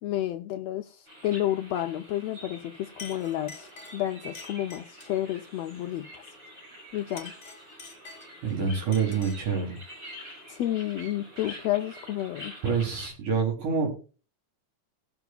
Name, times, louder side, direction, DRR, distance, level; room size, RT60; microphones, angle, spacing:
voice 1, 0.0-6.2 6.9-7.3 10.5-12.5, left 13 dB, 80° left, 1.5 m, -31 dB
sound 1, 1.1-13.1, equal, 35° right, 7.1 m, -47 dB
Chink clink, 2.5-2.7 3.0-5.2 7.0-8.5 8.9-9.5, left 4 dB, 30° left, 1.4 m, -47 dB
voice 2, 8.4-9.8 12.6-13.9, right 6 dB, 85° right, 4.8 m, -27 dB
19.0 x 7.0 x 2.3 m
omnidirectional pair, 3.5 m